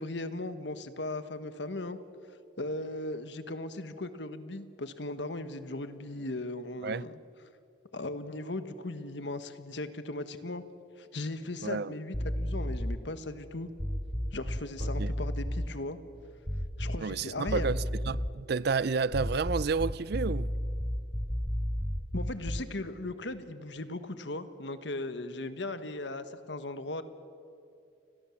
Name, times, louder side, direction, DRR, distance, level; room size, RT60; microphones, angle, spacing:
voice 1, 0.0-2.0 2.6-7.1 7.9-10.6 11.0-13.7 14.3-16.0 16.8-17.7 22.1-27.0, left 2 dB, 65° left, 1.4 m, -37 dB
voice 2, 11.6-11.9 14.8-15.1 17.0-20.5, right 4 dB, 55° right, 0.5 m, -31 dB
sound 1, 12.1-13.1 13.8-15.7 16.5-17.2 17.5-18.4 19.1-22.8, equal, 10° left, 0.8 m, -33 dB
29.5 x 21.0 x 7.2 m
head